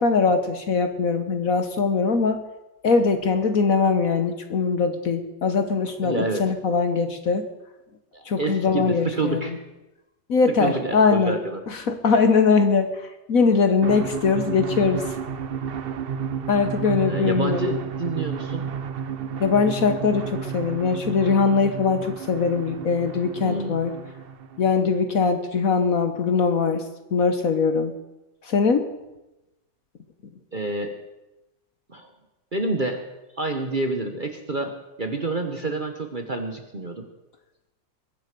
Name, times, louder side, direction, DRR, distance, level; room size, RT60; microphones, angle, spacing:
voice 1, 0.0-2.4 2.8-7.4 8.3-9.5 10.3-11.3 11.9-12.9 13.3-15.0 16.5-17.7 19.4-23.9 24.6-26.8 27.1-27.9 28.5-28.9, left 5 dB, 55° left, 9 dB, 1.3 m, -21 dB
voice 2, 6.0-6.4 8.1-9.5 10.5-11.6 17.1-18.7 23.4-23.8 30.5-31.0 31.9-32.1 32.5-33.1 33.4-37.1, right 2 dB, 30° right, 6 dB, 1.1 m, -28 dB
sound 1, 13.8-25.0, right 7 dB, 85° right, 0.5 m, -32 dB
21.5 x 7.9 x 6.7 m, 1.0 s
omnidirectional pair, 2.0 m